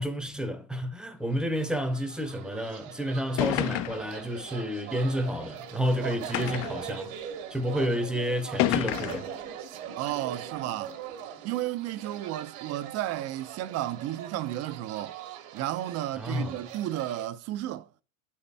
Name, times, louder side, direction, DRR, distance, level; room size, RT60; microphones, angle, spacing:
voice 1, 0.0-7.1 7.5-9.3 16.2-16.6, equal, ahead, 0.7 m, -30 dB
sound 1, 1.5-17.3, right 9 dB, 70° right, 1.3 m, -42 dB
sound 2, 2.8-2.9 3.4-4.2 5.1-5.2 6.3-6.9 7.8-7.9 8.6-9.3, left 15 dB, 45° left, 0.4 m, -29 dB
voice 2, 10.0-11.0 11.4-15.2 15.5-17.9, right 13 dB, 40° right, 0.4 m, -33 dB
7.7 x 4.2 x 3.3 m
supercardioid pair, 125°, 39 cm